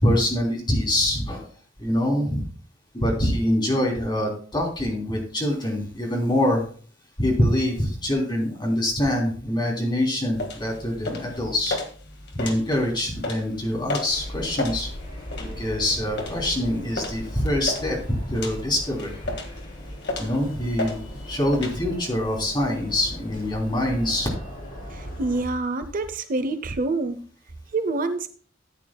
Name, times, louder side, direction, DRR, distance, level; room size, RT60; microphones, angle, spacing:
voice 1, 0.0-1.5 1.8-2.5 2.9-6.6 7.2-11.8 12.3-14.9 15.4-19.1 20.2-24.3, left 1 dB, 25° left, -1 dB, 3.3 m, -24 dB
sound 1, 10.3-21.8, left 2 dB, 60° left, 1.8 m, -35 dB
sound 2, 14.1-25.4, equal, 45° left, 3.7 m, -38 dB
voice 2, 24.9-27.2 27.7-28.3, right 3 dB, 45° right, 11 dB, 0.6 m, -26 dB
14.0 x 9.1 x 2.3 m, 0.43 s
head